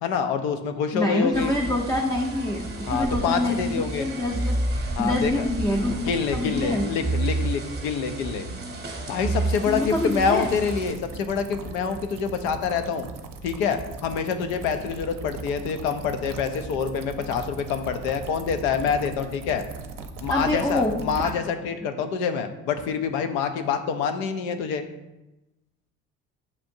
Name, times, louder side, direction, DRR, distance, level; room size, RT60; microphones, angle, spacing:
voice 1, 0.0-1.5 2.9-4.1 5.0-5.5 6.0-8.5 9.1-13.1 13.4-19.6 20.2-24.8, left 6 dB, 85° left, 8 dB, 0.5 m, -26 dB
voice 2, 0.9-3.6 4.0-4.6 5.0-6.0 6.3-6.9 9.7-10.5 20.3-20.9, left 1 dB, 10° left, -1 dB, 0.4 m, -25 dB
sound 1, 1.3-10.9, right 2 dB, 25° right, 0.8 m, -31 dB
sound 2, 9.5-21.3, right 4 dB, 50° right, 0.6 m, -38 dB
6.8 x 2.5 x 2.6 m, 0.99 s
hypercardioid pair, 60°, 41 cm